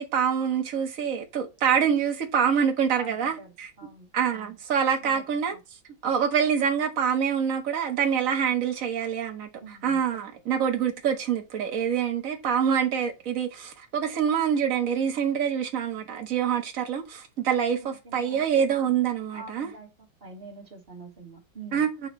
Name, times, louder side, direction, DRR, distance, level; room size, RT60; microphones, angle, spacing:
voice 1, 0.0-3.7 4.1-5.6 6.0-19.7 21.7-22.1, right 7 dB, 45° right, 1.5 m, -26 dB
voice 2, 3.0-3.5 3.8-4.1 5.0-5.6 9.6-10.0 17.7-18.4 19.3-19.9 20.2-21.8, right 3 dB, 30° right, 2.1 m, -45 dB
9.0 x 4.0 x 2.9 m
omnidirectional pair, 2.2 m